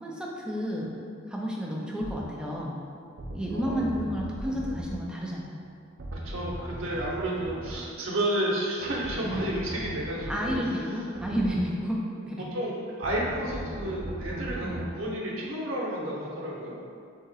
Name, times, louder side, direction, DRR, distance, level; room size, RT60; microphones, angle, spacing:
voice 1, 0.0-0.9 1.3-2.7 3.3-5.6 9.2-9.4 10.3-12.4 14.6-14.8, equal, 5° right, -3 dB, 0.5 m, -31 dB
sound 1, 2.0-2.2 3.2-5.1 6.0-7.9 8.8-10.7 11.2-11.7 13.0-14.9, right 1 dB, 60° right, 0.5 m, -38 dB
voice 2, 6.1-11.0 12.5-16.7, right 1 dB, 85° right, -4 dB, 0.9 m, -31 dB
3.8 x 2.9 x 4.0 m, 2.3 s
head